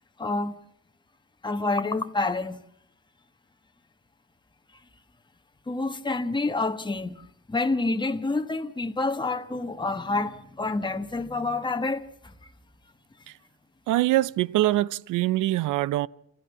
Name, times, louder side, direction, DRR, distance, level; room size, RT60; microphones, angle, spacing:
voice 1, 0.2-0.5 1.4-2.6 5.7-12.3, left 3 dB, 15° left, 1.5 m, -28 dB
voice 2, 13.9-16.1, right 16 dB, 85° right, 0.7 m, -23 dB
29.0 x 13.0 x 7.1 m
cardioid pair, 90°, 30 cm